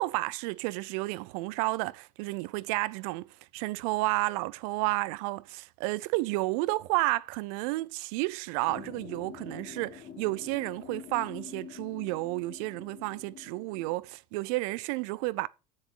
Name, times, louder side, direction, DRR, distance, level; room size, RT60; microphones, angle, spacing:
voice 1, 0.0-3.2 3.5-15.5, right 21 dB, 65° right, 0.6 m, -31 dB
sound 1, 8.7-13.9, left 7 dB, 50° left, 1.8 m, -46 dB
7.2 x 6.5 x 6.7 m
hypercardioid pair, 80°, 21 cm